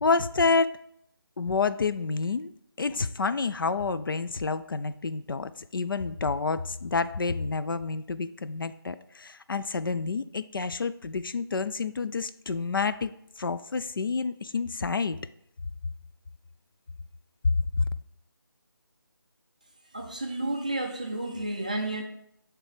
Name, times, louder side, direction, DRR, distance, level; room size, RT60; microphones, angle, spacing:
voice 1, 0.0-0.7 1.4-2.5 2.8-15.2 17.8-17.9, left 4 dB, 60° left, 0.4 m, -29 dB
voice 2, 19.9-22.0, right 2 dB, 20° right, 0.4 m, -31 dB
5.9 x 3.3 x 4.9 m
figure-of-eight pair, 170°, 13 cm